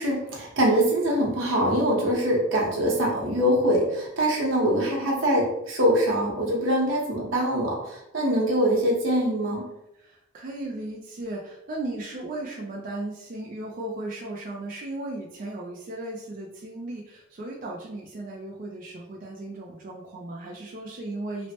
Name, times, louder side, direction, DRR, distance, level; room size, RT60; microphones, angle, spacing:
voice 1, 0.0-9.6, equal, 80° right, -2 dB, 0.9 m, -23 dB
voice 2, 10.0-21.5, right 2 dB, 45° right, -2 dB, 0.4 m, -36 dB
3.0 x 2.1 x 2.8 m, 0.81 s
head